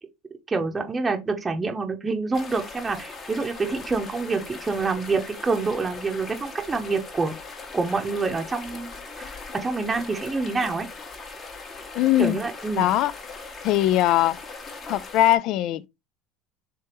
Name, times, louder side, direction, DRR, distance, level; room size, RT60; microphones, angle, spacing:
voice 1, 0.5-7.3 7.7-8.9 9.2-10.9 12.2-12.9, right 4 dB, 20° right, 0.8 m, -27 dB
sound 1, 2.3-15.4, left 4 dB, 35° left, 1.2 m, -40 dB
voice 2, 12.0-12.4 12.8-13.1 13.6-14.4 14.9-15.9, left 14 dB, 60° left, 0.3 m, -21 dB
3.4 x 3.2 x 4.4 m
supercardioid pair, 100°, 0 cm